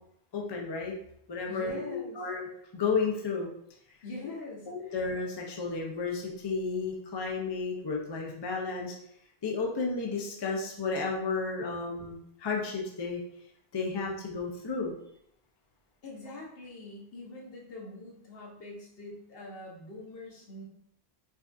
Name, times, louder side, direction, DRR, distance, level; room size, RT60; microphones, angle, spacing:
voice 1, 0.3-0.9 1.3-2.5 2.7-3.5 4.7-8.9 9.4-13.2 13.7-14.9, left 4 dB, 35° left, -1 dB, 0.4 m, -32 dB
voice 2, 1.5-2.2 4.0-5.0 16.0-20.6, left 2 dB, 65° left, -2 dB, 1.1 m, -44 dB
4.7 x 2.4 x 2.6 m, 0.71 s
omnidirectional pair, 1.1 m